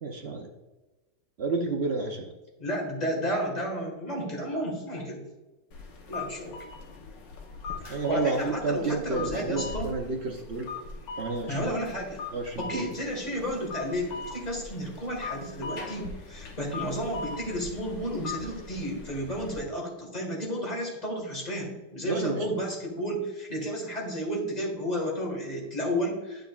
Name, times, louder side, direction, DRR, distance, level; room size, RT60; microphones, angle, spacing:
voice 1, 0.0-0.5 1.4-2.3 7.9-10.7 11.2-11.8 12.3-12.8 22.1-22.5, right 3 dB, 55° right, 2 dB, 0.7 m, -30 dB
voice 2, 2.6-5.3 6.1-6.7 7.8-9.9 11.5-12.2 12.6-26.5, equal, 25° left, -1 dB, 1.6 m, -32 dB
sound 1, 5.7-19.6, left 4 dB, 85° left, 1.7 m, -40 dB
9.5 x 6.4 x 2.3 m, 1.1 s
omnidirectional pair, 1.9 m